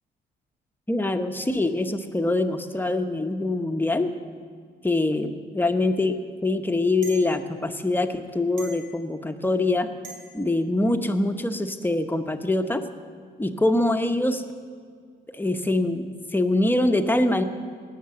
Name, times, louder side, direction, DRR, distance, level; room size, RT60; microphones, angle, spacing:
voice 1, 0.9-4.1 4.8-9.9 10.3-12.8 13.4-14.4 15.3-17.4, left 2 dB, 10° left, 7 dB, 0.9 m, -24 dB
sound 1, 5.7-5.8 7.0-7.3 8.6-8.9 10.0-10.3, right 4 dB, 80° right, 3.2 m, -40 dB
18.5 x 6.6 x 7.0 m, 2.1 s
cardioid pair, 90°, 20 cm